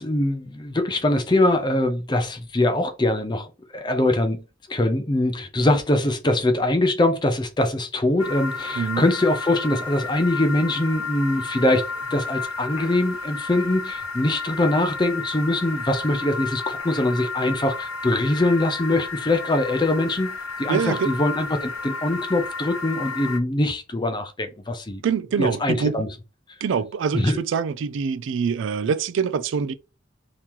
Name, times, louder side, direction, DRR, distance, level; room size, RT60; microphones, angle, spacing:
voice 1, 0.0-4.4 4.7-25.0 25.4-26.1 27.1-27.4, left 1 dB, 20° left, 0.5 m, -23 dB
sound 1, 8.2-23.4, left 4 dB, 90° left, 0.6 m, -32 dB
voice 2, 20.7-21.1 25.0-26.1 26.6-29.7, right 6 dB, 65° right, 0.3 m, -25 dB
3.0 x 2.8 x 3.6 m
head